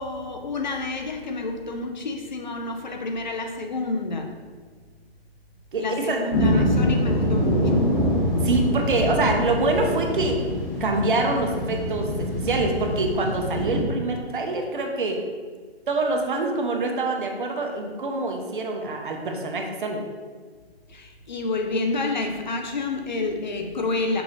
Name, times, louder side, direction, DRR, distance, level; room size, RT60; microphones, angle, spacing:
voice 1, 0.0-4.4 5.8-7.9 20.9-24.2, left 3 dB, 45° left, 4 dB, 0.5 m, -29 dB
voice 2, 5.7-6.7 8.4-10.4 10.8-15.2 15.9-20.0, right 2 dB, 50° right, 3 dB, 0.6 m, -25 dB
sound 1, 6.3-13.8, left 1 dB, 20° left, 0.9 m, -24 dB
6.0 x 2.5 x 3.1 m, 1.5 s
hypercardioid pair, 160°, 32 cm